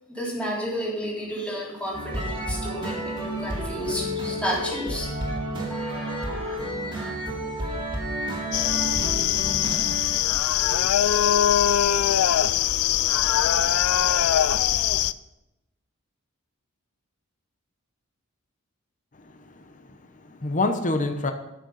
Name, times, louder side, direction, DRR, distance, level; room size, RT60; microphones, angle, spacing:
voice 1, 0.1-5.1 5.7-7.1, equal, 5° left, -5 dB, 3.6 m, -32 dB
sound 1, 1.9-10.3, right 1 dB, 25° right, 2.3 m, -31 dB
sound 2, 8.5-15.1, left 11 dB, 80° left, 0.4 m, -22 dB
voice 2, 19.2-21.3, left 2 dB, 35° left, 6 dB, 0.9 m, -28 dB
13.5 x 6.5 x 5.6 m, 0.92 s
head